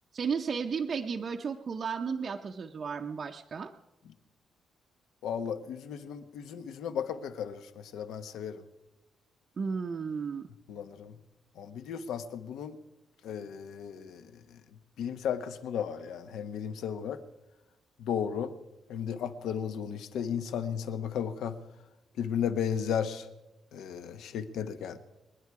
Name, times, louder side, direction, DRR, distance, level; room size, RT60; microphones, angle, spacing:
voice 1, 0.1-3.7 9.6-10.5, right 5 dB, 35° right, 3 dB, 0.6 m, -33 dB
voice 2, 5.2-8.6 10.7-11.2 11.6-12.8 13.2-14.2 15.0-17.2 18.0-18.5 18.9-21.6 22.2-23.3 23.7-25.0, left 8 dB, 85° left, 10 dB, 1.1 m, -34 dB
27.5 x 10.0 x 4.8 m, 0.98 s
cardioid pair, 180°, 0 cm